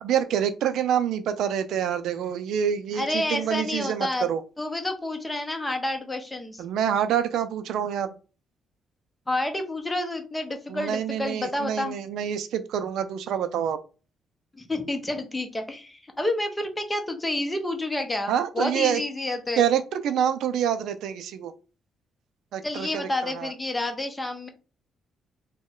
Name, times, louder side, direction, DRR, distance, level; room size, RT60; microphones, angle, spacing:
voice 1, 0.0-4.4 6.6-8.1 10.7-13.8 18.3-19.0 19.6-21.5 22.5-23.5, right 9 dB, 80° right, 11 dB, 0.3 m, -26 dB
voice 2, 3.0-4.3 4.6-6.6 9.3-12.0 14.5-19.6 22.6-24.5, left 1 dB, 15° left, 6 dB, 0.7 m, -29 dB
3.0 x 2.1 x 3.6 m, 0.35 s
cardioid pair, 90°, 0 cm